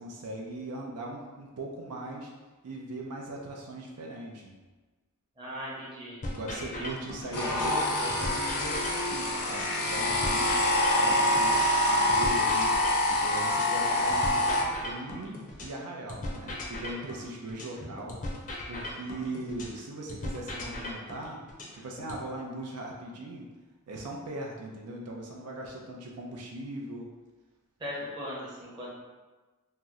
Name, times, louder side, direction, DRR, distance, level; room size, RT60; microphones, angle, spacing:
voice 1, 0.0-2.3 2.6-4.5 6.3-10.6 10.9-12.8 13.2-18.2 18.7-21.4 21.7-23.5 23.9-27.1, right 2 dB, 80° right, -1 dB, 0.5 m, -39 dB
voice 2, 5.4-6.2 6.6-6.9 27.8-28.9, equal, 20° right, -6 dB, 0.7 m, -39 dB
sound 1, 6.2-7.8 8.1-11.8 12.1-15.8 16.1-19.8 20.1-22.2, left 1 dB, 35° left, 0.5 m, -38 dB
sound 2, 7.3-14.6, left 1 dB, 90° left, 0.6 m, -26 dB
2.8 x 2.0 x 3.5 m, 1.2 s
head